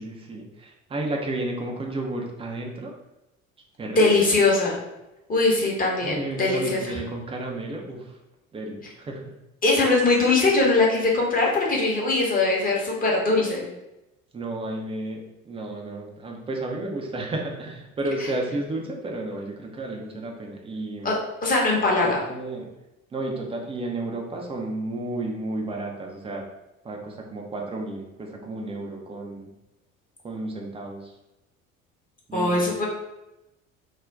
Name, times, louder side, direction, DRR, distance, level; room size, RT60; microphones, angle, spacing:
voice 1, 0.0-2.9 3.8-4.1 6.0-8.2 8.5-9.3 14.3-21.1 22.0-22.7 23.1-26.5 26.8-29.5 30.2-31.1 32.3-32.7, right 2 dB, 15° right, 0 dB, 0.5 m, -32 dB
voice 2, 4.0-4.8 5.3-7.0 9.6-13.6 21.0-21.1 21.4-22.2 32.3-32.9, left 3 dB, 20° left, -3 dB, 0.8 m, -21 dB
2.5 x 2.1 x 3.3 m, 0.95 s
figure-of-eight pair, 60°, 40 cm